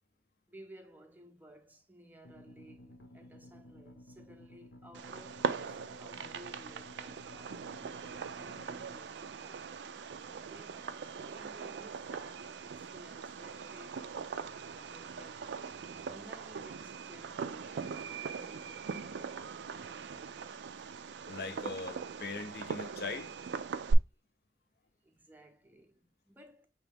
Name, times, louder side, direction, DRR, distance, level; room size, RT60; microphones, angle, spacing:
voice 1, 0.5-7.7 8.3-9.7 10.3-15.5 16.1-19.6 25.0-26.7, right 1 dB, 10° right, 0.5 m, -56 dB
sound 1, 2.2-9.0, left 1 dB, 90° left, 0.9 m, -54 dB
Fireworks, 4.9-23.9, right 5 dB, 80° right, 0.4 m, -40 dB
voice 2, 21.3-23.4, left 3 dB, 55° left, 0.5 m, -40 dB
4.7 x 3.0 x 3.4 m
head